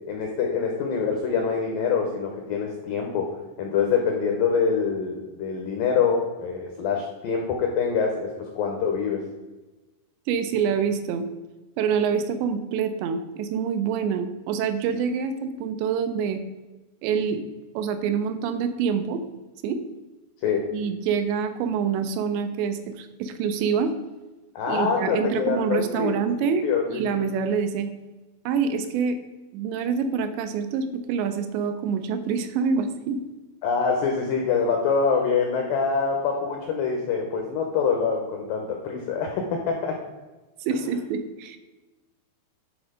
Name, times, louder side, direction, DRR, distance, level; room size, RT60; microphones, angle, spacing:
voice 1, 0.1-9.2 20.4-20.7 24.6-27.3 33.6-40.0, left 5 dB, 85° left, 2 dB, 2.0 m, -25 dB
voice 2, 10.3-11.3 11.8-16.4 17.0-17.4 17.7-19.2 19.6-19.8 20.7-23.9 24.7-27.9 28.5-29.2 29.5-33.2 40.6-41.6, right 6 dB, 80° right, 8 dB, 2.7 m, -26 dB
10.5 x 4.1 x 5.0 m, 1.1 s
omnidirectional pair, 5.2 m